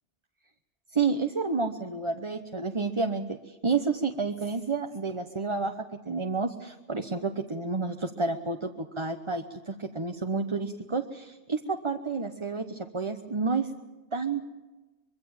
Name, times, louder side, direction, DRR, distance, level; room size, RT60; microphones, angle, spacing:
voice 1, 0.9-13.7 14.1-14.4, right 4 dB, 25° right, 5 dB, 1.0 m, -30 dB
25.0 x 23.0 x 7.3 m, 1.1 s
omnidirectional pair, 1.2 m